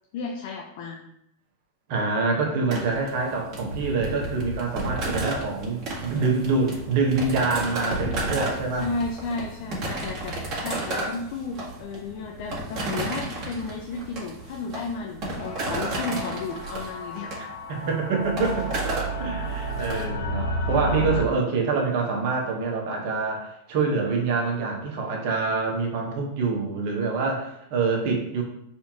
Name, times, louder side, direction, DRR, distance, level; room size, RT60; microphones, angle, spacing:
voice 1, 0.1-1.0 8.8-17.4, left 4 dB, 60° left, 1 dB, 0.7 m, -33 dB
voice 2, 1.9-8.9 17.7-18.8 19.2-28.4, right 4 dB, 60° right, 1 dB, 1.2 m, -26 dB
sound 1, 2.7-20.0, right 2 dB, 40° right, 1.7 m, -32 dB
sound 2, 15.4-21.2, right 1 dB, 90° left, 0.9 m, -31 dB
4.3 x 3.6 x 3.0 m, 0.76 s
hypercardioid pair, 105°, 0 cm